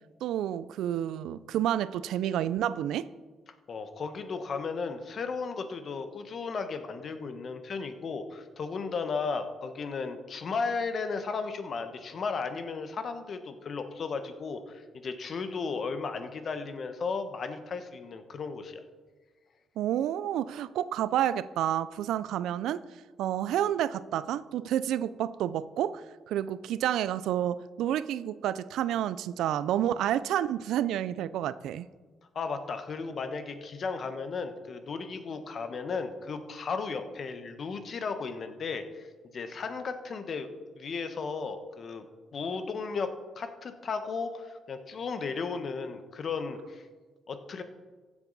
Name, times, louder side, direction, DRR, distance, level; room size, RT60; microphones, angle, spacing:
voice 1, 0.2-3.1 19.8-22.8 23.2-31.9, right 11 dB, 85° right, 17 dB, 0.3 m, -29 dB
voice 2, 3.7-18.8 32.3-39.1 39.3-40.5 40.8-42.0 42.3-46.9 47.3-47.6, left 4 dB, 50° left, 8 dB, 1.1 m, -35 dB
15.5 x 7.2 x 4.0 m, 1.4 s
cardioid pair, 90°, 0 cm